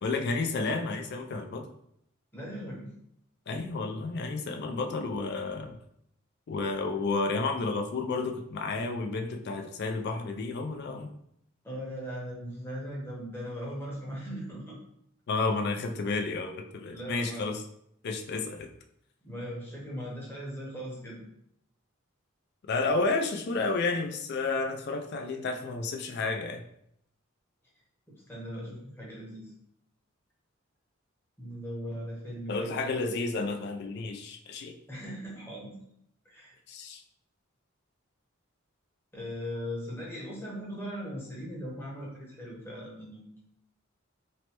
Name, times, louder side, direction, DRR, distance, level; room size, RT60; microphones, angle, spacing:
voice 1, 0.0-1.7 3.5-5.8 6.5-11.1 15.3-17.6 18.0-18.7 22.7-26.6 32.5-34.7 36.7-37.0, left 3 dB, 55° left, 4 dB, 0.4 m, -31 dB
voice 2, 2.3-2.9 11.6-14.8 16.9-17.5 19.2-21.2 28.1-29.5 31.4-32.9 34.9-35.8 36.2-36.5 39.1-43.5, equal, 10° left, -4 dB, 0.8 m, -39 dB
3.1 x 2.1 x 2.9 m, 0.74 s
head